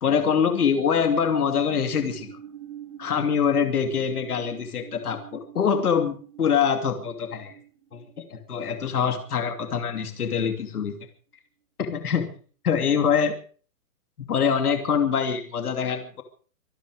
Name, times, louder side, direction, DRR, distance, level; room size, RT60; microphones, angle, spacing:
voice 1, 0.0-2.4 3.0-7.5 7.9-11.0 11.8-12.3 12.6-13.3 14.3-16.2, left 7 dB, 75° left, 6 dB, 2.8 m, -24 dB
sound 1, 0.8-9.9, right 10 dB, 55° right, 2.9 m, -46 dB
25.5 x 11.5 x 4.9 m, 0.43 s
hypercardioid pair, 180°, 46 cm